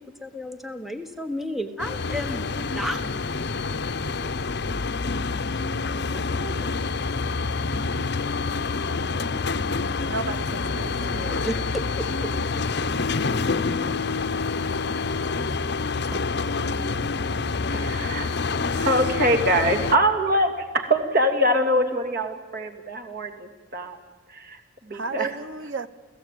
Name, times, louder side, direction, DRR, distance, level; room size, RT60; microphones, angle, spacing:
voice 1, 0.0-3.6 5.5-6.9 10.6-12.3, equal, ahead, 1.2 m, -35 dB
sound 1, 1.8-19.9, left 4 dB, 60° left, 0.8 m, -27 dB
voice 2, 10.0-11.5 24.9-25.9, right 4 dB, 85° right, 1.2 m, -33 dB
sound 2, 14.8-19.0 19.3-19.4 19.8-19.9, right 1 dB, 30° right, 1.9 m, -45 dB
voice 3, 17.7-18.3 18.7-24.0 24.3-25.3, equal, 50° right, 2.8 m, -24 dB
29.5 x 16.5 x 9.3 m
head